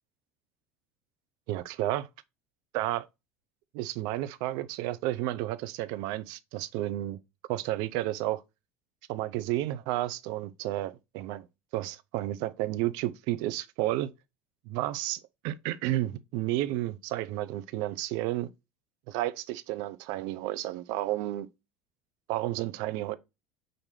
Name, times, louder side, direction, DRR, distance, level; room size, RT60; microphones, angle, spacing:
voice 1, 1.5-2.1 2.7-3.1 3.7-7.2 7.5-8.4 9.1-11.5 11.7-14.1 14.7-18.5 19.1-21.5 22.3-23.1, right 15 dB, 55° right, 0.5 m, -31 dB
5.8 x 2.6 x 3.1 m
figure-of-eight pair, 65°, 8 cm